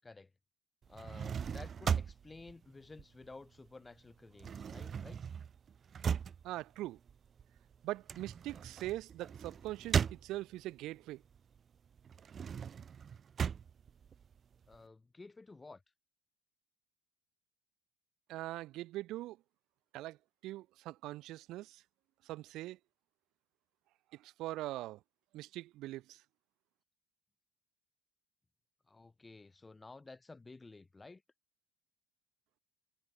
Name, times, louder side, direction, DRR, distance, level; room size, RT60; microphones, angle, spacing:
sound 1, 0.8-3.7 4.0-10.8 11.2-14.8, right 7 dB, 25° right, 0.6 m, -38 dB
voice 1, 0.9-5.2 14.7-15.8 28.9-31.2, left 3 dB, 10° left, 6.6 m, -53 dB
voice 2, 6.4-7.0 7.8-11.2 18.3-19.4 19.9-20.2 20.4-21.8 22.2-22.8 24.1-25.0 25.3-26.2, right 16 dB, 55° right, 4.8 m, -42 dB
cardioid pair, 155°, 0 cm